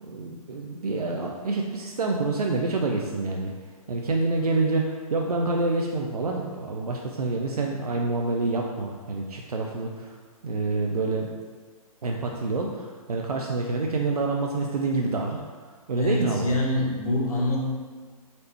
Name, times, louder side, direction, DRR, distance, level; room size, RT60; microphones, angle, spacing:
voice 1, 0.0-3.5 3.9-10.2 10.4-11.3 12.0-15.4 15.9-16.5, right 3 dB, 90° right, 0 dB, 0.4 m, -27 dB
voice 2, 16.0-17.7, left 1 dB, 75° left, -3 dB, 1.1 m, -25 dB
4.0 x 3.2 x 2.9 m, 1.5 s
figure-of-eight pair, 125°, 19 cm